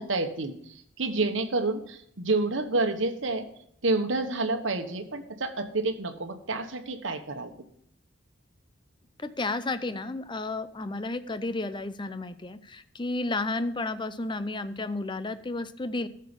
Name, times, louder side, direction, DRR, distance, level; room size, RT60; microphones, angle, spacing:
voice 1, 0.0-3.5 3.8-7.5, right 3 dB, 80° right, 7 dB, 1.2 m, -29 dB
voice 2, 9.2-16.1, left 2 dB, 25° left, 12 dB, 0.6 m, -32 dB
14.0 x 6.7 x 5.2 m, 0.69 s
head